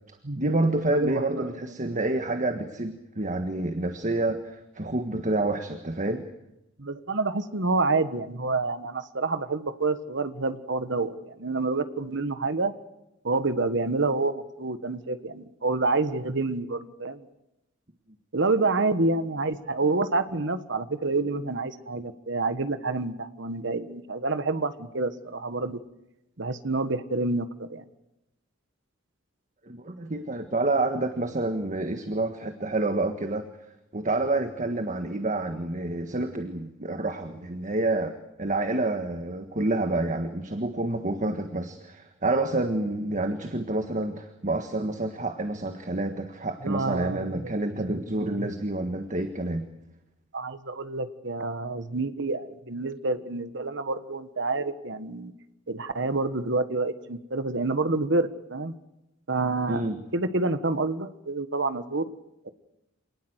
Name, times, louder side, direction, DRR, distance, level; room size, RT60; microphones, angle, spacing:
voice 1, 0.3-6.2 29.6-33.5 33.9-49.7 59.7-60.0, right 2 dB, 40° right, 7 dB, 1.6 m, -28 dB
voice 2, 0.9-1.5 6.8-12.7 13.2-17.3 18.3-25.8 26.4-27.8 46.6-48.5 50.3-55.3 55.7-58.7 59.3-59.8 60.1-62.0, right 3 dB, 65° right, 11 dB, 1.5 m, -28 dB
27.0 x 19.0 x 8.1 m, 0.90 s
head